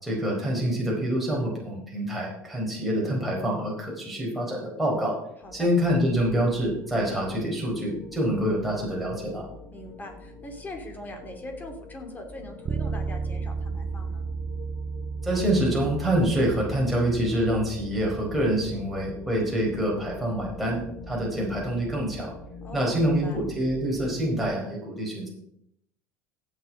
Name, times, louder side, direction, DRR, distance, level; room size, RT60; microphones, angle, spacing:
voice 1, 0.0-5.2 5.5-9.5 15.2-22.3 22.7-25.3, right 1 dB, ahead, -4 dB, 4.4 m, -26 dB
sound 1, 5.4-24.5, left 2 dB, 75° left, 3.8 m, -45 dB
voice 2, 9.7-14.2 22.6-23.4, left 1 dB, 20° left, 4 dB, 3.1 m, -41 dB
Bass guitar, 12.7-22.5, right 5 dB, 30° right, 0.7 m, -36 dB
16.0 x 7.0 x 4.9 m, 0.74 s
supercardioid pair, 115°, 8 cm